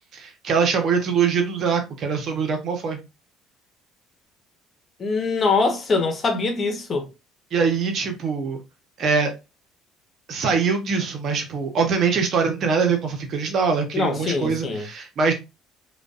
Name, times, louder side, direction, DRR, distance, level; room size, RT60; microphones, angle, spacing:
voice 1, 0.1-3.0 7.5-8.6 9.0-9.3 10.3-15.3, right 5 dB, 50° right, 1.1 m, -23 dB
voice 2, 5.0-7.1 13.9-14.8, left 4 dB, 40° left, 1.1 m, -23 dB
5.0 x 2.5 x 2.5 m
figure-of-eight pair, 55°, 0 cm